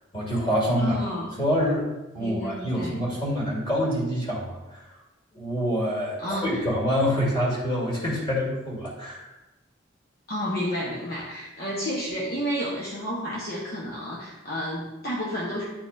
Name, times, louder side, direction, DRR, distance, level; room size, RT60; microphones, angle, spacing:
voice 1, 0.1-1.0 1.4-1.9 2.1-4.8 5.3-9.3, equal, 25° left, -4 dB, 1.9 m, -26 dB
voice 2, 0.8-1.3 2.2-3.0 6.2-6.6 10.3-15.7, equal, 50° left, -4 dB, 0.8 m, -31 dB
9.3 x 4.2 x 2.5 m, 1.0 s
head